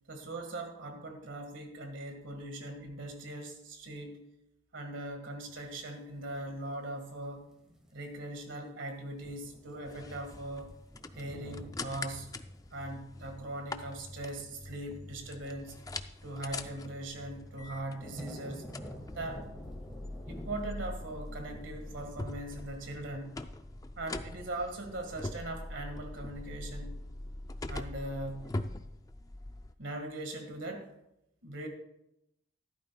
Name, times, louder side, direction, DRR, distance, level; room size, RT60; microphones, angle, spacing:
voice 1, 0.1-4.2 4.7-7.5 7.9-10.8 11.2-12.3 12.7-15.8 16.2-18.7 19.1-19.4 20.3-23.4 24.0-27.0 27.7-28.5 29.8-30.9 31.4-31.7, right 1 dB, 80° right, 5 dB, 1.7 m, -40 dB
sound 1, 5.5-7.0 7.4-7.9 8.3-8.4 8.7-8.9 9.2-16.9 17.4-22.1, equal, 5° right, 1.5 m, -50 dB
sound 2, 9.9-29.7, left 2 dB, 20° left, 0.4 m, -43 dB
14.5 x 12.0 x 2.3 m, 0.83 s
head